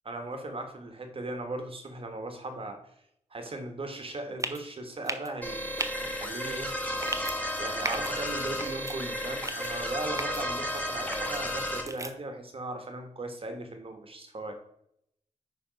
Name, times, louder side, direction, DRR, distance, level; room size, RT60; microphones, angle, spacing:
voice 1, 0.0-2.8 3.3-7.0 7.6-14.5, right 2 dB, 45° right, 5 dB, 1.5 m, -38 dB
sound 1, 4.4-4.6 5.0-5.3 5.8-5.9 7.0-7.4 7.8-8.1 8.6-9.0 9.4-9.7 10.2-10.4 11.1-11.4 11.9-12.1, right 3 dB, 25° right, 0.6 m, -35 dB
sound 2, 5.4-11.8, equal, 10° left, 1.3 m, -33 dB
9.8 x 3.5 x 5.2 m, 0.76 s
wide cardioid pair, 115°, 13 cm